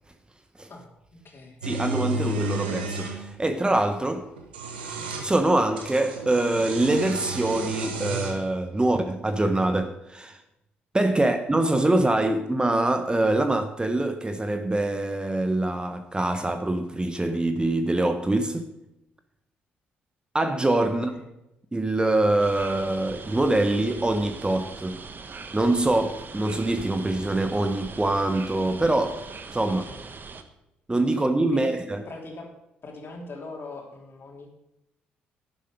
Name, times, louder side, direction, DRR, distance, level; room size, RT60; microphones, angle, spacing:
voice 1, 0.7-1.6 11.1-11.3 21.0-21.3 29.8-30.0 31.5-31.7 32.0-32.5 32.8-34.5, left 2 dB, 45° left, 3.3 m, -41 dB
voice 2, 1.6-4.4 5.1-10.4 10.9-18.7 20.3-21.1 21.7-25.0 25.5-29.2 29.5-29.8 30.9-32.0, right 2 dB, 15° right, 1.1 m, -24 dB
sound 1, 1.6-3.2 4.4-5.3 5.8-8.4, right 2 dB, 85° right, 1.2 m, -32 dB
sound 2, 22.4-30.4, right 4 dB, 40° right, 1.2 m, -41 dB
11.0 x 10.5 x 5.1 m
hypercardioid pair, 45°, 5 cm